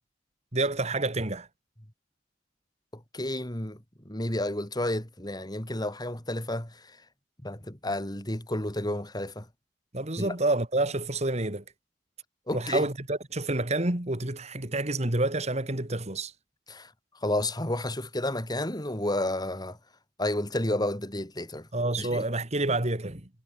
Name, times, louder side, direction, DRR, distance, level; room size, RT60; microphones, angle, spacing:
voice 1, 0.5-1.5 9.9-11.6 12.5-16.3 21.7-23.3, right 2 dB, 40° right, 2.5 m, -28 dB
voice 2, 2.9-3.8 4.0-7.0 7.4-9.5 10.2-10.3 12.5-12.8 16.7-16.9 17.2-19.8 20.2-21.7 22.0-22.2, left 1 dB, 25° left, 4.3 m, -31 dB
head